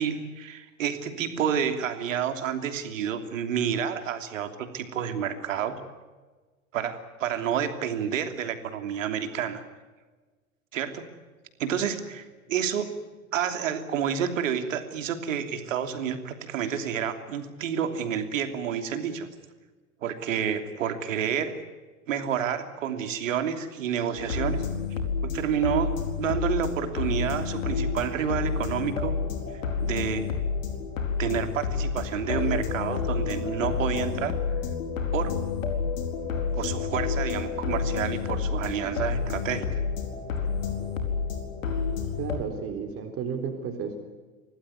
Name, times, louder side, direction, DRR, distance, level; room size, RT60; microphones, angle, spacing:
voice 1, 0.0-5.8 6.7-9.6 10.7-11.1 11.6-12.9 13.3-19.3 20.0-21.6 22.1-24.6 25.2-29.2 29.8-30.3 31.2-34.4 35.1-35.4 36.5-39.8, right 8 dB, 60° right, 8 dB, 3.1 m, -29 dB
sound 1, 24.2-42.4, left 5 dB, 65° left, 4.6 m, -29 dB
voice 2, 42.1-44.0, right 6 dB, 30° right, 6 dB, 3.9 m, -33 dB
26.0 x 18.5 x 9.6 m, 1.3 s
figure-of-eight pair, 90°, 43 cm